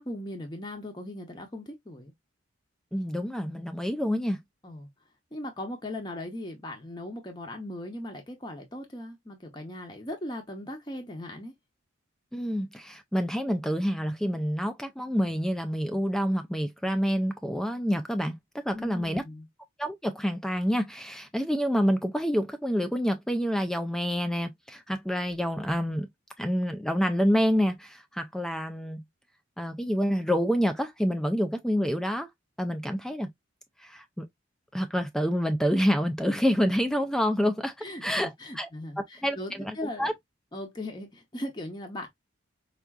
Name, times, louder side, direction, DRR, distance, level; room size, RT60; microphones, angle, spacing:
voice 1, 0.0-2.1 4.6-4.9 5.3-11.5 18.7-19.5 37.8-40.1 40.5-42.1, left 1 dB, 20° left, 0.7 m, -38 dB
voice 2, 2.9-4.4 12.3-18.3 18.6-19.2 19.8-26.1 26.4-29.0 29.6-32.3 32.6-33.3 33.8-34.3 34.7-37.7 38.0-38.7 39.2-40.1, equal, 5° left, 0.3 m, -27 dB
4.5 x 2.4 x 2.3 m
head